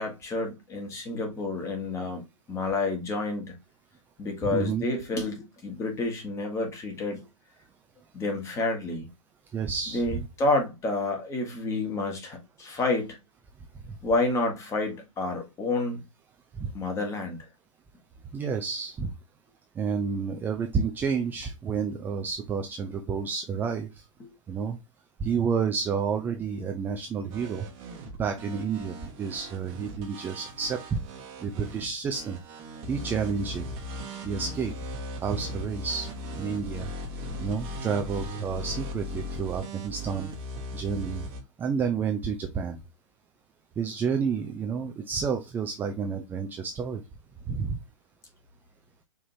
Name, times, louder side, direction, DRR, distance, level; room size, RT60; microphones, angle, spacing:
voice 1, 0.0-3.6 4.2-7.2 8.1-9.1 9.9-13.2 14.0-16.1 16.7-17.4 24.2-24.3, left 2 dB, 15° left, 1.3 m, -29 dB
voice 2, 4.5-4.8 9.5-10.0 16.6-16.7 18.3-19.1 19.8-23.9 24.5-24.8 25.2-27.6 28.2-31.0 31.4-32.4 32.9-33.6 34.2-34.7 35.2-36.1 36.4-36.9 37.4-40.3 40.7-41.2 41.6-42.8 43.8-47.0 47.5-47.8, right 6 dB, 10° right, 0.4 m, -30 dB
sound 1, 27.3-41.4, left 1 dB, 35° right, 1.0 m, -38 dB
5.0 x 2.9 x 2.7 m
figure-of-eight pair, 115°, 17 cm